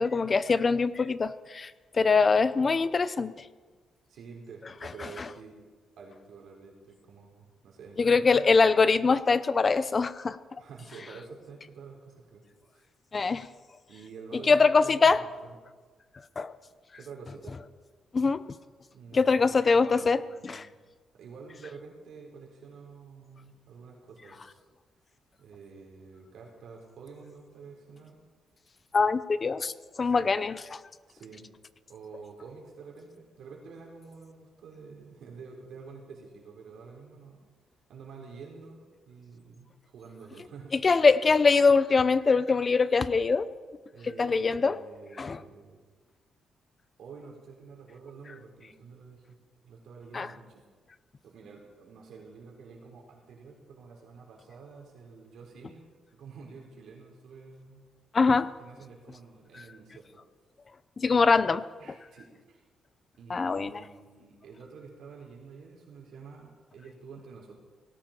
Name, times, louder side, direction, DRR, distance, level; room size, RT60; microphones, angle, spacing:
voice 1, 0.0-3.3 4.8-5.3 8.0-10.4 13.1-13.5 14.3-15.2 16.4-16.5 18.1-18.4 19.1-20.7 28.9-29.7 30.0-30.8 40.7-43.5 44.2-44.8 45.2-45.4 50.1-50.3 58.1-58.5 59.5-59.6 61.0-61.6 63.3-63.7, left 4 dB, 30° left, 15 dB, 0.7 m, -23 dB
voice 2, 4.1-5.6 6.0-8.5 10.6-12.4 12.7-12.8 13.9-15.6 16.9-17.6 18.9-20.7 21.1-24.6 25.4-28.2 30.0-30.3 31.1-31.5 31.9-37.4 37.9-38.8 39.1-40.7 43.9-45.8 47.0-49.4 49.6-50.6 51.2-57.8 58.6-60.2 61.8-62.6 63.2-67.6, right 5 dB, 75° right, 0 dB, 4.1 m, -48 dB
18.5 x 17.0 x 4.5 m, 1.4 s
cardioid pair, 125°, 0 cm